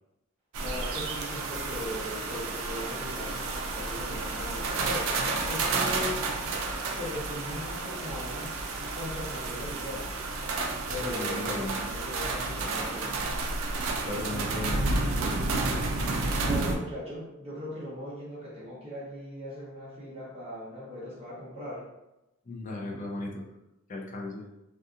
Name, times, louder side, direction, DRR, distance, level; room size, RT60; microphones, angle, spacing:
sound 1, 0.5-16.8, right 3 dB, 85° right, 0.4 m, -31 dB
voice 1, 0.6-6.2 6.9-10.1 10.7-13.2 16.5-21.9, left 1 dB, 30° right, -8 dB, 1.0 m, -39 dB
sound 2, 2.5-8.0, right 2 dB, 10° right, 0.6 m, -50 dB
voice 2, 10.9-11.8 14.0-14.8 22.5-23.5 23.9-24.4, left 2 dB, 40° left, 0 dB, 0.4 m, -36 dB
2.7 x 2.4 x 2.4 m, 0.93 s
head